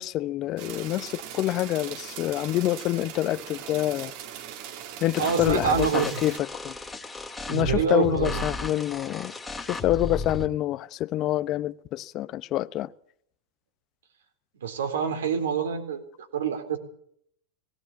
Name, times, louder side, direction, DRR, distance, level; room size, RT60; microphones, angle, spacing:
voice 1, 0.0-4.1 5.0-6.4 6.6-6.8 7.5-9.3 9.7-12.9, left 14 dB, 45° left, 0.8 m, -27 dB
sound 1, 0.6-6.4, right 10 dB, 55° right, 2.1 m, -40 dB
sound 2, 5.2-10.5, left 2 dB, 10° left, 2.3 m, -35 dB
voice 2, 5.2-6.1 7.5-8.4 14.6-16.0 16.3-16.8, right 7 dB, 85° right, 3.9 m, -26 dB
18.5 x 17.5 x 8.6 m
hypercardioid pair, 110°, 0 cm